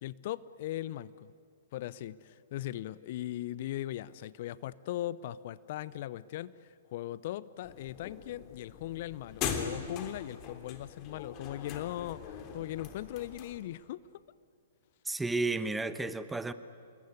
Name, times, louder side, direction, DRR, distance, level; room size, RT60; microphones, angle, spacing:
voice 1, 0.0-1.3 1.7-14.0, left 13 dB, 50° left, 19 dB, 0.6 m, -39 dB
sound 1, 7.6-13.6, left 7 dB, 35° left, 3.1 m, -41 dB
voice 2, 15.0-16.5, right 3 dB, 5° right, 12 dB, 1.2 m, -32 dB
28.5 x 21.0 x 9.5 m, 2.4 s
figure-of-eight pair, 115°, 0 cm